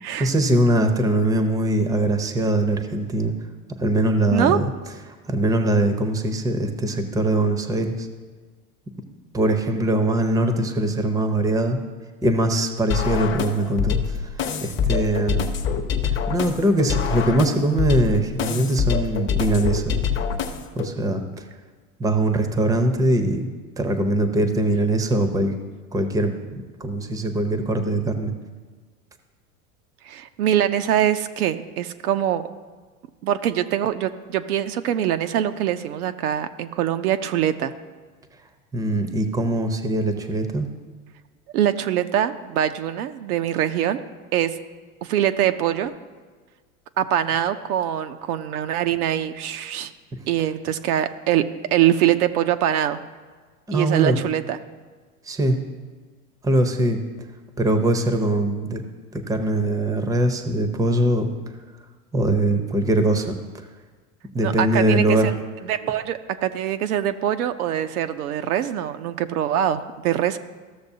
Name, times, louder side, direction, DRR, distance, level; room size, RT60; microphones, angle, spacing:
voice 1, 0.2-3.3 3.8-4.6 5.3-8.1 9.3-11.8 12.2-15.5 16.3-20.0 20.8-21.2 22.0-23.5 23.8-25.6 25.9-28.3 38.7-40.7 53.7-54.2 55.3-55.6 56.4-57.0 57.6-58.8 59.1-61.3 62.1-63.3 64.3-65.3, right 1 dB, 10° right, 7 dB, 0.6 m, -22 dB
voice 2, 4.3-4.7 30.0-32.4 33.2-37.7 41.5-44.0 44.3-44.5 45.0-45.9 47.0-49.9 50.3-51.4 51.7-53.0 53.7-54.6 64.4-65.3 65.6-70.4, right 11 dB, 75° right, 9 dB, 0.7 m, -23 dB
sound 1, 12.9-20.9, left 7 dB, 25° left, 0.8 m, -25 dB
14.5 x 6.5 x 2.7 m, 1.4 s
hypercardioid pair, 105°, 45 cm